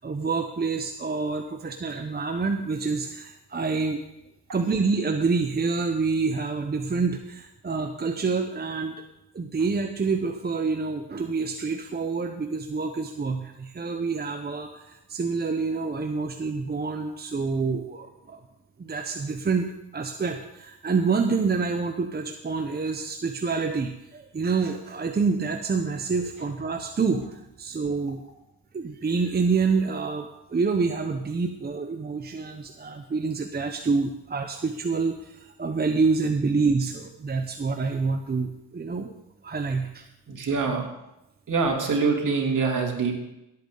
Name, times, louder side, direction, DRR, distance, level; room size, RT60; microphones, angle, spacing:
voice 1, 0.0-4.0 4.5-9.0 9.3-18.4 18.8-28.2 28.7-39.1 39.4-40.0, right 4 dB, 25° right, 5 dB, 0.9 m, -27 dB
voice 2, 40.3-40.8 41.5-43.2, right 4 dB, 55° right, 1 dB, 3.2 m, -24 dB
17.0 x 8.7 x 4.0 m, 0.90 s
cardioid pair, 80°, 37 cm